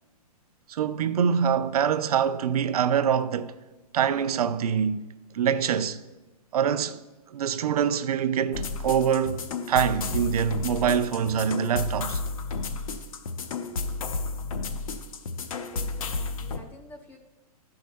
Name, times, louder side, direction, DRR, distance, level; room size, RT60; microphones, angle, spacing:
voice 1, 0.7-3.5 3.9-5.1 5.3-6.0 6.5-7.0 7.3-12.2, right 8 dB, 70° right, 0.5 m, -25 dB
sound 1, 8.5-16.6, left 3 dB, 60° left, 0.9 m, -32 dB
voice 2, 12.6-12.9 15.7-17.2, left 1 dB, 10° left, 0.4 m, -48 dB
11.5 x 4.8 x 5.2 m
hypercardioid pair, 155°, 20 cm